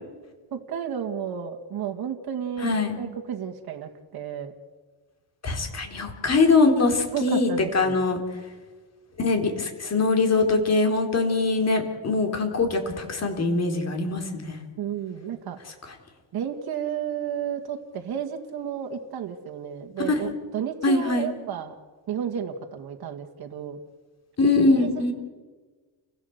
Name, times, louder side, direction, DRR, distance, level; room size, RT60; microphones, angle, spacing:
voice 1, 0.5-4.5 7.1-8.0 14.8-15.6 16.3-21.7 22.1-23.8 24.8-25.1, right 8 dB, 50° right, 3 dB, 2.0 m, -32 dB
voice 2, 2.6-3.0 5.4-8.2 9.2-14.6 20.1-20.3 20.8-21.3 24.4-25.1, left 3 dB, 30° left, 4 dB, 4.1 m, -23 dB
30.0 x 16.5 x 8.1 m, 1.4 s
cardioid pair, 140°, 48 cm